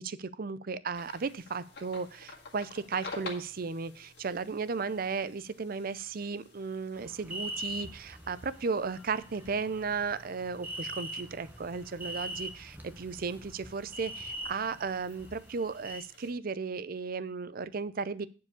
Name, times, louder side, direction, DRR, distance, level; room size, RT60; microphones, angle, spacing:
voice 1, 0.0-18.3, right 4 dB, 50° right, 16 dB, 0.5 m, -35 dB
sound 1, 0.9-16.3, left 3 dB, 60° left, 2.1 m, -51 dB
sound 2, 6.9-16.0, right 1 dB, 10° right, 1.0 m, -43 dB
9.6 x 4.8 x 6.9 m, 0.39 s
head